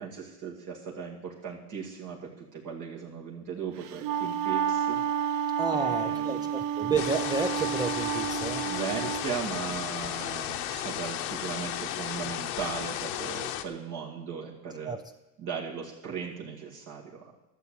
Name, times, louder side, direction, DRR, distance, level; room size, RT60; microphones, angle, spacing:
voice 1, 0.0-5.4 5.7-6.5 8.6-15.0 15.4-17.3, right 6 dB, 50° right, -3 dB, 2.5 m, -38 dB
Wind instrument woodwind instrument, 3.8-9.3, right 8 dB, 80° right, 0.7 m, -30 dB
voice 2, 5.6-8.7 14.9-15.0, right 4 dB, 10° right, 8 dB, 0.5 m, -31 dB
sound 1, 7.0-13.6, left 12 dB, 85° left, 1.1 m, -34 dB
12.0 x 7.2 x 8.3 m, 1.0 s
cardioid pair, 125°, 39 cm